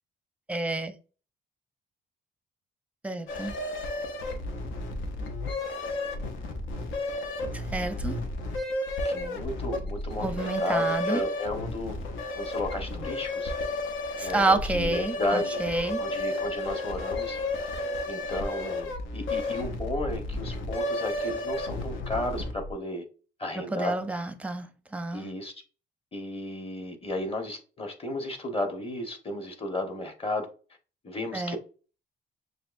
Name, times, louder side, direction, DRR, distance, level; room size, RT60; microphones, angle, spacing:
voice 1, 0.5-0.9 3.0-3.5 7.5-8.2 10.2-11.2 14.2-16.0 23.7-25.3 31.3-31.6, right 2 dB, 5° right, 0.6 m, -29 dB
sound 1, 3.3-22.7, left 1 dB, 75° left, 0.9 m, -32 dB
voice 2, 9.0-12.0 12.3-13.5 14.2-15.6 16.0-17.4 18.0-23.0 23.4-23.9 25.1-25.6 26.1-30.5 31.0-31.6, left 1 dB, 30° left, 1.3 m, -33 dB
6.3 x 2.5 x 2.6 m
cardioid pair, 90°, 20 cm